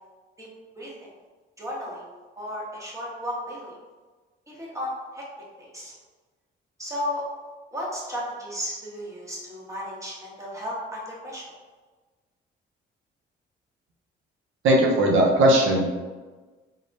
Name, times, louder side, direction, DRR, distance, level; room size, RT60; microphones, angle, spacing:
voice 1, 0.8-1.1 1.6-2.0 2.4-3.7 4.5-5.2 5.6-5.9 6.8-7.2 7.7-11.4, equal, 15° right, -5 dB, 1.4 m, -34 dB
voice 2, 14.6-15.8, right 1 dB, 80° right, -1 dB, 0.7 m, -18 dB
3.8 x 3.4 x 2.7 m, 1.3 s
cardioid pair, 90°, 20 cm